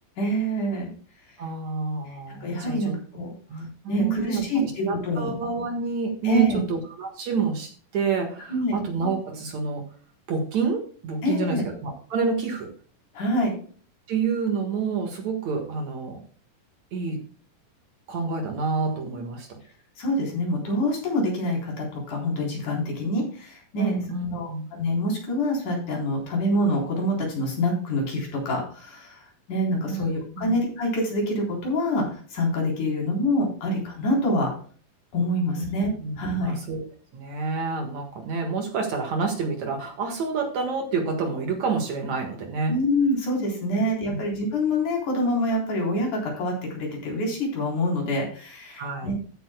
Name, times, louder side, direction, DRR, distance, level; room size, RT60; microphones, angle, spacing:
voice 1, 0.2-0.9 2.4-5.3 6.2-6.6 8.5-8.8 11.2-11.6 13.1-13.6 20.0-23.9 24.3-34.5 35.1-35.9 36.2-36.5 42.7-49.1, left 1 dB, 60° left, -1 dB, 5.2 m, -26 dB
voice 2, 1.4-3.0 3.5-9.8 10.3-12.7 14.1-16.2 16.9-17.2 18.1-19.6 23.8-24.7 29.9-30.1 30.4-30.5 35.5-35.7 36.0-36.8 37.1-42.7 44.1-44.2 48.8-49.1, right 5 dB, 60° right, 4 dB, 2.6 m, -28 dB
14.5 x 9.0 x 2.2 m, 0.43 s
omnidirectional pair, 4.1 m